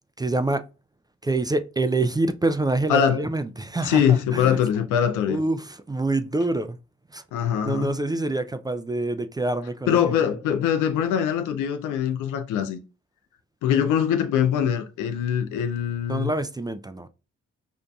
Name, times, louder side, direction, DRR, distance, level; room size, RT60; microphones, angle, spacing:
voice 1, 0.2-0.7 1.2-4.6 5.3-6.8 7.1-7.2 7.6-10.0 16.1-17.1, right 2 dB, 15° right, 0.3 m, -26 dB
voice 2, 2.9-3.2 3.8-5.4 7.3-7.9 9.9-12.8 13.6-16.3, left 8 dB, 85° left, 0.5 m, -23 dB
5.3 x 2.5 x 2.3 m
supercardioid pair, 45°, 30 cm